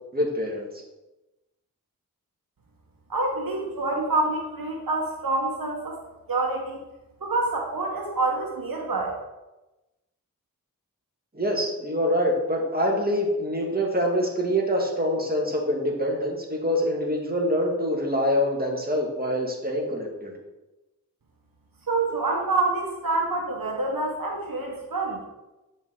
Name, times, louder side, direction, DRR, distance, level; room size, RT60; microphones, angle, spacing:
voice 1, 0.1-0.7 11.3-20.3, equal, 25° right, -1 dB, 1.9 m, -25 dB
voice 2, 3.1-6.0 6.3-6.8 7.2-9.2 21.9-25.2, right 2 dB, 75° right, -1 dB, 1.2 m, -27 dB
8.3 x 5.1 x 3.8 m, 1.0 s
wide cardioid pair, 40°, 35 cm